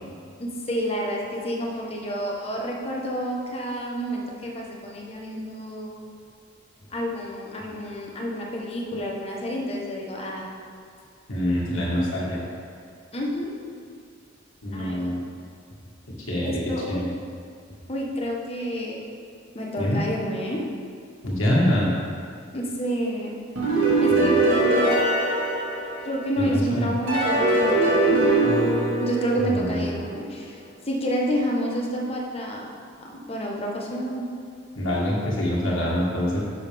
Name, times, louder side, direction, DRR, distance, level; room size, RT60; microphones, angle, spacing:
voice 1, 0.4-6.0 6.9-10.5 13.1-13.5 14.7-15.2 16.4-17.0 17.9-19.0 19.5-20.6 22.5-23.4 23.8-25.0 26.0-28.7 29.0-32.7 33.0-34.3, equal, 30° left, -2 dB, 1.2 m, -29 dB
voice 2, 11.3-12.4 14.6-15.2 16.3-16.5 16.9-17.1 19.8-20.0 21.2-21.9 24.1-24.4 26.5-26.9 29.4-29.9 34.7-36.4, left 1 dB, 75° left, -5 dB, 1.8 m, -25 dB
sound 1, 23.6-26.4 27.1-29.9, right 2 dB, 75° right, 1.9 m, -21 dB
10.5 x 6.3 x 3.5 m, 2.3 s
head